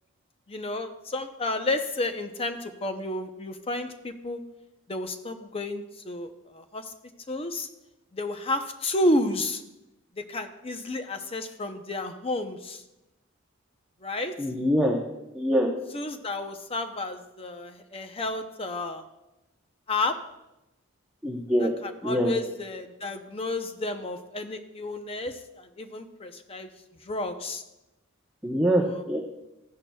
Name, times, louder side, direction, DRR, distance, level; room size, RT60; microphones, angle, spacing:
voice 1, 0.5-4.4 4.9-6.9 7.3-7.7 8.1-9.6 10.2-12.8 14.0-14.3 15.9-19.0 19.9-20.2 21.6-26.7 27.1-27.6 28.7-29.1, left 2 dB, 25° left, 7 dB, 0.6 m, -31 dB
voice 2, 14.4-15.0 15.3-15.7 21.2-21.7 22.0-22.3 28.4-29.2, equal, 5° right, -2 dB, 0.8 m, -24 dB
14.5 x 10.5 x 2.3 m, 0.94 s
head